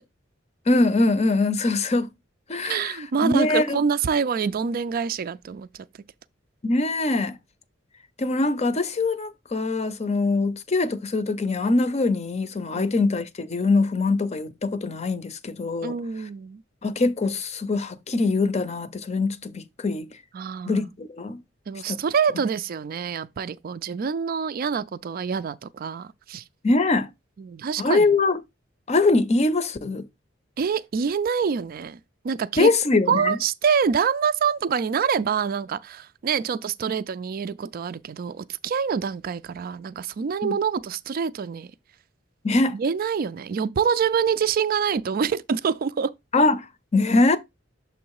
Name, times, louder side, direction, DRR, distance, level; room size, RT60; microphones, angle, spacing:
voice 1, 0.7-2.1 2.5-3.0 3.2-3.8 6.6-7.4 8.2-15.9 16.8-20.1 20.7-21.4 21.9-22.0 26.6-27.1 27.8-28.4 28.9-30.1 32.6-33.4 40.4-40.5 42.4-42.8 46.3-46.7 46.9-47.4, left 3 dB, 35° left, 0.6 m, -23 dB
voice 2, 2.6-5.9 12.7-12.9 15.8-16.6 20.3-20.9 21.7-26.4 27.4-28.1 30.6-32.0 32.2-32.7 33.1-41.7 42.7-46.1, right 6 dB, 50° right, 0.4 m, -26 dB
7.0 x 3.1 x 4.7 m
head